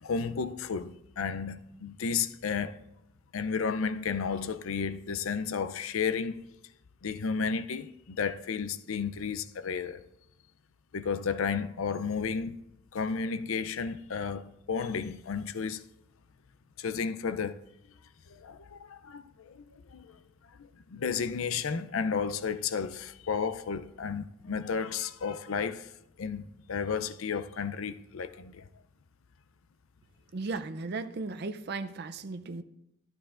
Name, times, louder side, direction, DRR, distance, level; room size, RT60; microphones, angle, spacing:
voice 1, 0.0-2.8 3.3-6.5 7.0-10.1 10.9-12.6 12.9-15.8 16.8-17.6 18.3-20.2 20.6-25.9 26.2-28.7, left 6 dB, 75° left, 0.5 m, -33 dB
voice 2, 30.3-32.6, right 3 dB, 50° right, 0.5 m, -36 dB
12.5 x 12.0 x 2.5 m
head